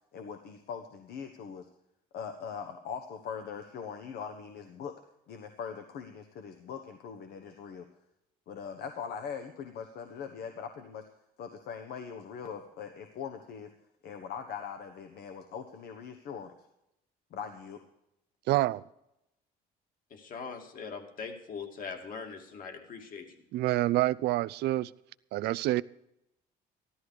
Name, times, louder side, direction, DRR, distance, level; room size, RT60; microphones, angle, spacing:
voice 1, 0.1-1.7 2.1-4.9 5.3-7.8 8.5-11.0 11.4-13.7 14.0-16.5 17.3-17.8, left 7 dB, 70° left, 7 dB, 1.3 m, -41 dB
voice 2, 18.5-18.8 23.5-24.9 25.3-25.8, right 16 dB, 80° right, 19 dB, 0.5 m, -27 dB
voice 3, 20.1-23.4, left 5 dB, 55° left, 4 dB, 2.5 m, -41 dB
14.0 x 12.5 x 4.9 m, 0.84 s
cardioid pair, 110°, 17 cm